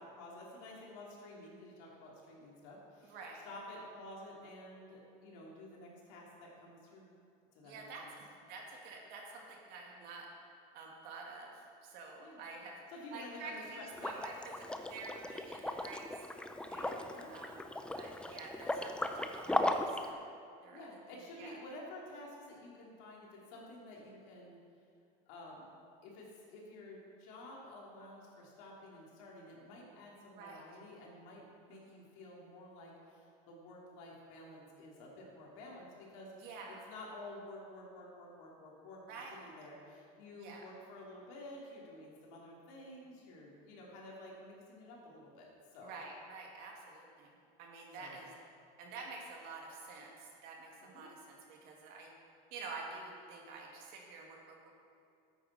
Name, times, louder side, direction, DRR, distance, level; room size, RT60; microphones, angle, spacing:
voice 1, 0.0-3.2 3.4-7.1 7.5-8.1 12.2-12.4 12.9-14.1 16.7-17.4 20.7-24.6 25.3-25.6 26.0-31.4 31.7-36.5 36.9-45.5 45.7-46.0 48.0-48.2 50.8-51.1, left 1 dB, 80° left, -3 dB, 3.0 m, -51 dB
voice 2, 3.0-3.4 7.6-10.3 10.7-12.8 13.1-14.3 14.6-16.1 16.7-17.6 17.9-20.2 20.6-20.9 21.4-21.6 30.3-30.6 31.7-32.1 36.4-36.8 39.1-39.4 40.4-40.6 45.8-47.3 47.6-48.3 48.8-52.1 52.5-54.7, right 3 dB, 65° right, -1 dB, 2.4 m, -49 dB
Liquid, 13.9-20.1, left 1 dB, 5° left, 0.5 m, -37 dB
13.0 x 9.1 x 4.3 m, 2.4 s
cardioid pair, 130°, 17 cm